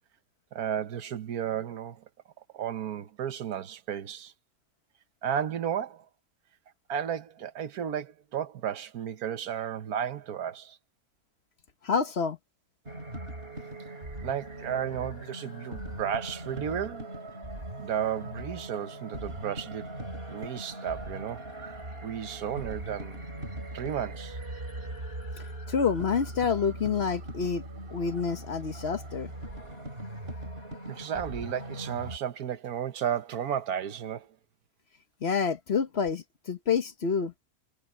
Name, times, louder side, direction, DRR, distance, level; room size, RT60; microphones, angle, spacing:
voice 1, 0.5-2.0 2.5-4.3 5.2-6.1 6.9-10.8 14.2-17.1 17.8-19.9 20.3-23.3 23.7-24.4 30.9-34.3, right 9 dB, 90° right, 1.5 m, -33 dB
voice 2, 11.8-12.4 25.7-27.6 27.9-29.3 35.2-37.3, left 6 dB, 50° left, 1.2 m, -28 dB
sound 1, 12.9-32.2, right 1 dB, 40° right, 6.3 m, -40 dB
omnidirectional pair, 1.5 m